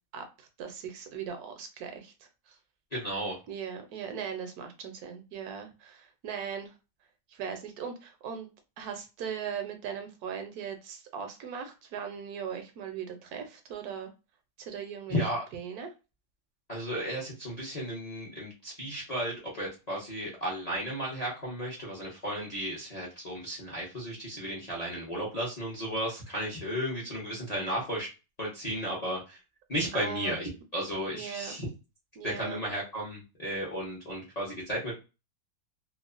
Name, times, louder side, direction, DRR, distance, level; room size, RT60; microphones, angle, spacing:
voice 1, 0.1-2.1 2.5-2.6 3.5-6.7 7.3-8.5 8.8-14.1 14.6-15.2 15.5-15.9 29.9-30.4 31.1-31.5 32.2-32.6, right 7 dB, 75° right, 5 dB, 1.0 m, -39 dB
voice 2, 2.9-3.4 15.1-15.4 16.7-28.1 28.4-29.4 29.7-31.7 32.2-34.9, equal, 40° left, -4 dB, 0.6 m, -34 dB
3.0 x 2.0 x 2.4 m, 0.29 s
omnidirectional pair, 1.7 m